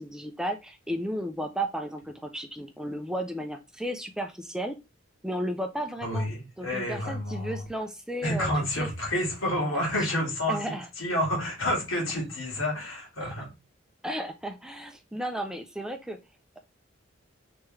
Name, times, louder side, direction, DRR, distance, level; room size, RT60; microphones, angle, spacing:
voice 1, 0.0-4.7 5.2-6.3 6.6-8.5 8.8-8.9 10.5-10.9 14.0-16.2, equal, 5° right, 0.3 m, -33 dB
voice 2, 6.0-7.6 8.2-13.5, left 1 dB, 80° left, 2.0 m, -29 dB
3.4 x 3.2 x 3.1 m
head